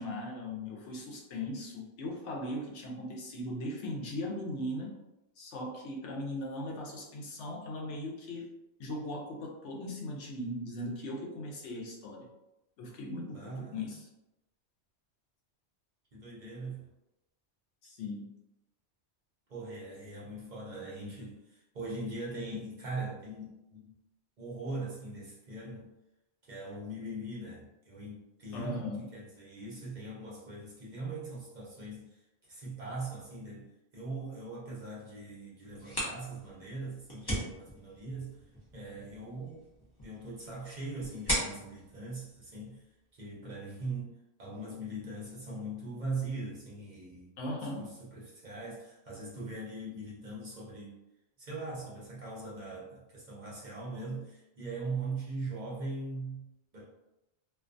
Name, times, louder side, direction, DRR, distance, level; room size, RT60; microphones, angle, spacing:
voice 1, 0.0-5.0 5.4-8.5 8.8-12.3 12.8-14.1 17.8-18.3 28.5-29.1 47.4-47.9, left 1 dB, 85° left, -1 dB, 0.9 m, -38 dB
voice 2, 13.3-14.0 16.1-16.9 19.5-23.9 24.4-25.9 26.4-38.4 38.7-39.6 40.0-42.8 43.1-47.3 47.8-51.0 51.4-56.8, right 2 dB, 50° right, -5 dB, 0.7 m, -41 dB
sound 1, 35.6-43.2, equal, 25° left, 0.7 m, -39 dB
2.4 x 2.2 x 2.5 m, 0.93 s
omnidirectional pair, 1.2 m